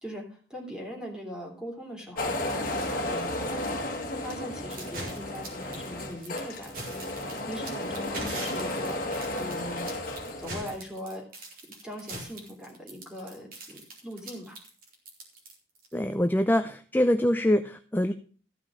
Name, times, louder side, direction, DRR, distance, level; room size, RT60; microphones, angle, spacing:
voice 1, 0.0-9.9 10.4-11.3 11.8-14.6, left 1 dB, 5° right, 0 dB, 3.2 m, -40 dB
sound 1, 2.2-10.7, left 1 dB, 50° left, 1.6 m, -33 dB
sound 2, 4.7-15.9, right 2 dB, 55° right, 3.7 m, -41 dB
voice 2, 15.9-18.1, left 1 dB, 10° left, 8 dB, 0.5 m, -24 dB
14.5 x 5.8 x 6.3 m, 0.42 s
head